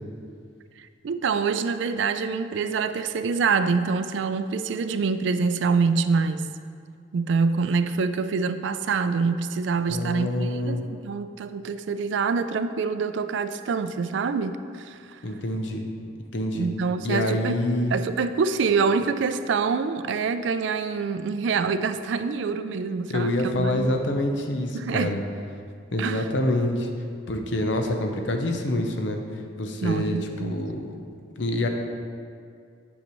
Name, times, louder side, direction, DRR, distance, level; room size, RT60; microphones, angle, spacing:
voice 1, 0.8-6.5 7.1-15.2 16.5-17.6 17.9-23.9 24.7-25.2 26.0-26.3 29.8-30.6, right 5 dB, 70° right, 11 dB, 0.3 m, -26 dB
voice 2, 9.9-10.9 15.2-15.8 16.3-16.7 17.0-17.9 23.1-25.2 25.9-26.9 27.3-29.2 29.6-30.8 31.4-31.7, left 1 dB, 70° left, 4 dB, 0.7 m, -26 dB
8.5 x 6.4 x 3.0 m, 2.2 s
head